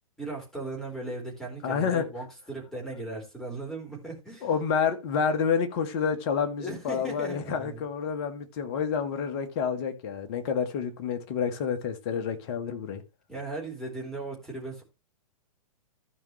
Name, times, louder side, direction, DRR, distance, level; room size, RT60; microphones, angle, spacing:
voice 1, 0.2-4.5 6.6-7.8 13.3-14.8, right 2 dB, 5° left, 4.4 m, -37 dB
voice 2, 1.6-2.0 4.4-13.0, left 6 dB, 45° left, 1.7 m, -29 dB
15.0 x 5.4 x 3.3 m
figure-of-eight pair, 110°, 18 cm